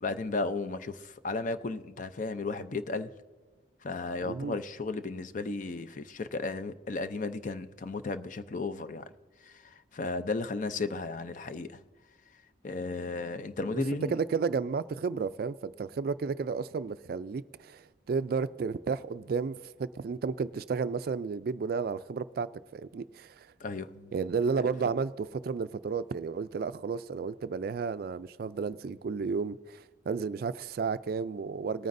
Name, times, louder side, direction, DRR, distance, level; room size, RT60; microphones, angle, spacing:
voice 1, 0.0-3.1 3.8-9.1 9.4-11.8 12.6-14.2 23.6-24.1 24.6-24.7, left 3 dB, 45° left, 0.5 m, -34 dB
voice 2, 4.2-4.6 13.7-13.8 14.1-23.5 24.1-31.9, right 5 dB, 55° right, 0.3 m, -32 dB
19.0 x 9.3 x 2.6 m
head